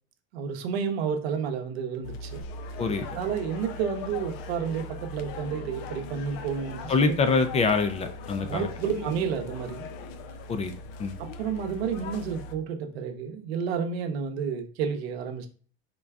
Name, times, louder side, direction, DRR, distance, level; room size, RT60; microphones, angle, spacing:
voice 1, 0.3-2.4 3.1-7.1 8.4-9.9 11.4-15.5, right 7 dB, 85° right, 6 dB, 0.8 m, -31 dB
sound 1, 2.0-12.6, left 3 dB, 65° left, 0.6 m, -40 dB
voice 2, 6.9-8.7 10.5-10.7 11.0-11.2, left 4 dB, 20° left, 9 dB, 0.3 m, -25 dB
3.8 x 2.3 x 3.4 m, 0.41 s
supercardioid pair, 105°, 31 cm